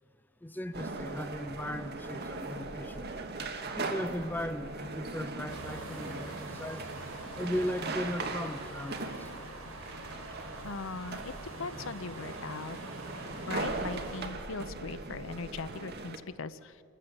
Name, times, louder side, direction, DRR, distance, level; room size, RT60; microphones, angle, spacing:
voice 1, 0.4-3.1 3.7-6.9 7.4-9.3, equal, 10° left, 10 dB, 0.6 m, -37 dB
sound 1, 0.7-16.2, right 3 dB, 50° right, 1.4 m, -40 dB
sound 2, 5.5-14.2, right 2 dB, 80° right, 6.5 m, -45 dB
voice 2, 10.6-11.3 11.6-12.8 13.4-16.8, left 4 dB, 65° left, 14 dB, 0.7 m, -39 dB
28.5 x 14.0 x 7.1 m, 2.7 s
head